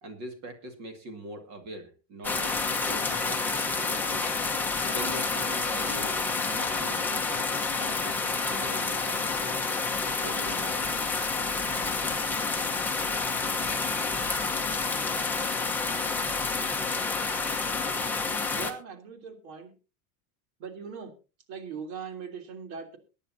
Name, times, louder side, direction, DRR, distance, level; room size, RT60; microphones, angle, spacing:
voice 1, 0.0-4.3 4.8-9.7 10.2-11.0, right 1 dB, 35° right, 6 dB, 2.2 m, -42 dB
sound 1, 2.2-18.7, left 4 dB, 5° left, 1.1 m, -29 dB
voice 2, 18.6-19.7 20.6-21.1 21.5-23.0, right 6 dB, 60° right, 5 dB, 3.3 m, -40 dB
23.0 x 10.0 x 2.8 m, 0.32 s
supercardioid pair, 160°, 46 cm